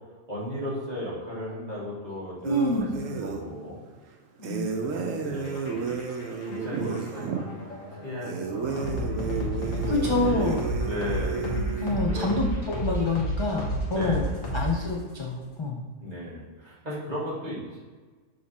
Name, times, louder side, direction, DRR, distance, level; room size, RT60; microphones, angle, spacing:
voice 1, 0.3-2.7 3.0-3.8 4.8-5.9 6.5-9.1 10.2-12.5 13.9-14.6 16.0-17.8, left 1 dB, 30° right, -8 dB, 2.0 m, -36 dB
voice 2, 2.4-2.9 4.4-4.7 9.9-10.6 11.8-14.2 14.5-15.8, left 2 dB, 40° left, -2 dB, 0.4 m, -27 dB
sound 1, 2.4-3.4 4.4-7.4 8.2-11.9, right 5 dB, 75° right, 1.0 m, -32 dB
sound 2, 5.3-15.1, equal, 75° left, 1.5 m, -31 dB
6.9 x 3.3 x 4.1 m, 1.4 s
omnidirectional pair, 1.4 m